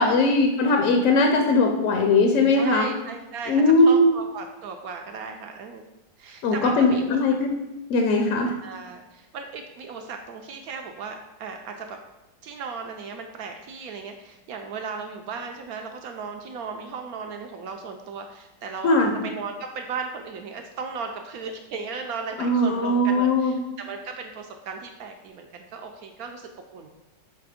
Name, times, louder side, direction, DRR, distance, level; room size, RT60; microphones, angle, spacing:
voice 1, 0.0-2.9 3.5-4.1 6.4-7.5 7.9-8.5 18.8-19.1 22.4-23.5, left 2 dB, 65° left, 3 dB, 0.8 m, -20 dB
voice 2, 2.5-5.8 6.2-7.2 8.6-12.0 12.4-26.9, right 5 dB, 75° right, 4 dB, 0.8 m, -36 dB
5.8 x 3.4 x 4.9 m, 0.98 s
omnidirectional pair, 2.0 m